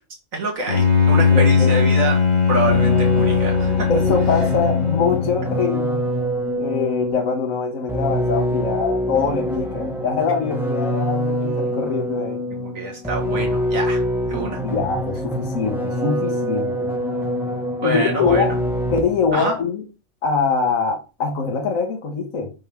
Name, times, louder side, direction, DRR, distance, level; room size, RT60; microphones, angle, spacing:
voice 1, 0.3-3.9 12.5-14.6 17.8-18.6 19.3-19.6, right 2 dB, 70° right, 2.1 m, -26 dB
Bowed string instrument, 0.7-5.6, left 5 dB, 30° left, 1.9 m, -18 dB
voice 2, 1.3-1.7 3.9-6.0 6.6-12.4 14.6-16.9 17.8-18.5 18.9-19.8 20.2-22.5, left 5 dB, 70° left, 1.5 m, -23 dB
sound 1, 2.7-19.3, equal, ahead, 1.2 m, -25 dB
5.8 x 5.3 x 3.4 m
omnidirectional pair, 1.5 m